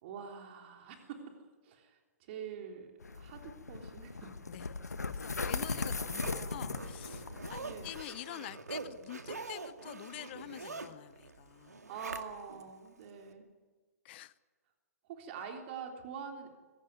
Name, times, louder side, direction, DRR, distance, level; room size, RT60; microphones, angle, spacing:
voice 1, 0.0-1.3 1.6-2.9 3.1-4.4 5.5-5.8 6.2-6.9 7.6-7.9 11.9-13.5 15.1-16.5, right 6 dB, 45° right, 3 dB, 3.5 m, -45 dB
sound 1, 3.0-8.0, left 4 dB, 85° left, 1.3 m, -38 dB
voice 2, 4.5-11.8 14.0-14.3, left 15 dB, 45° left, 19 dB, 0.9 m, -47 dB
Zipper (clothing), 5.0-12.6 13.1-13.2, right 3 dB, 85° right, 2.1 m, -45 dB
23.5 x 16.5 x 9.5 m, 1.4 s
figure-of-eight pair, 125°, 9 cm